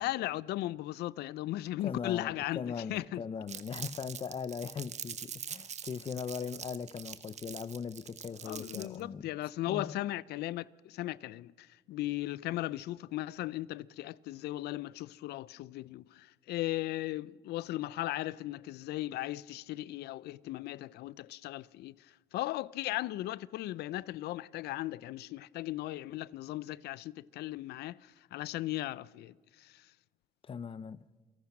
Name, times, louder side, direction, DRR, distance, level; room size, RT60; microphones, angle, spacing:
voice 1, 0.0-2.6 2.9-3.2 8.4-21.9 22.3-28.0 28.3-29.3, left 16 dB, 75° left, 0.5 m, -37 dB
voice 2, 1.8-9.3 9.7-10.0 30.4-31.0, left 6 dB, 30° left, 0.7 m, -39 dB
Crumpling crinkling, 3.5-9.0, right 8 dB, 40° right, 1.2 m, -44 dB
28.5 x 18.5 x 6.0 m
cardioid pair, 110°, 17 cm